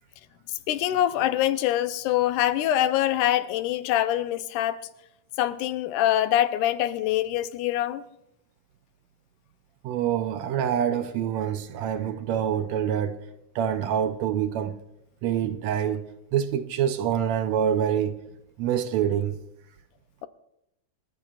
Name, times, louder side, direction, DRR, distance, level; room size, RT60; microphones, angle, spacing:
voice 1, 0.5-4.8 5.4-8.0, left 12 dB, 90° left, 2.2 m, -24 dB
voice 2, 9.8-13.1 13.6-14.7 15.2-16.0 16.3-18.1 18.6-19.4, right 9 dB, 75° right, 1.8 m, -26 dB
28.0 x 13.5 x 2.4 m
omnidirectional pair, 3.5 m